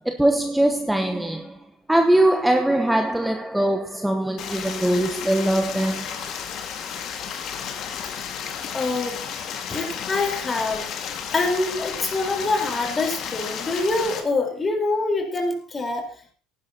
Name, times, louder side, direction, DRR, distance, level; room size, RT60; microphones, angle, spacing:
voice 1, 0.0-6.3, right 1 dB, 5° right, 1.1 m, -22 dB
Stream, 4.4-14.2, left 7 dB, 50° left, 1.9 m, -32 dB
voice 2, 8.7-9.2 9.7-10.9 11.3-16.3, left 3 dB, 25° left, 4.0 m, -25 dB
18.0 x 11.0 x 2.9 m
figure-of-eight pair, 65°, 0 cm